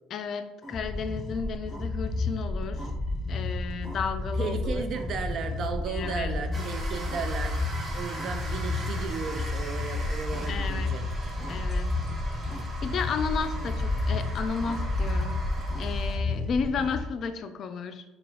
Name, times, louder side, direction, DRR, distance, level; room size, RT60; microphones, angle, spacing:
voice 1, 0.1-2.9 3.3-4.9 5.9-6.4 10.5-11.0 11.5-11.9 12.4-15.4 15.8-18.0, left 5 dB, 50° left, 9 dB, 0.4 m, -33 dB
sound 1, 0.6-17.0, left 2 dB, 5° left, 1.0 m, -31 dB
voice 2, 4.4-11.1, right 5 dB, 55° right, 7 dB, 0.4 m, -35 dB
sound 2, 6.5-16.2, right 2 dB, 30° right, 0.9 m, -41 dB
4.3 x 2.3 x 3.7 m, 0.99 s
hypercardioid pair, 65°, 0 cm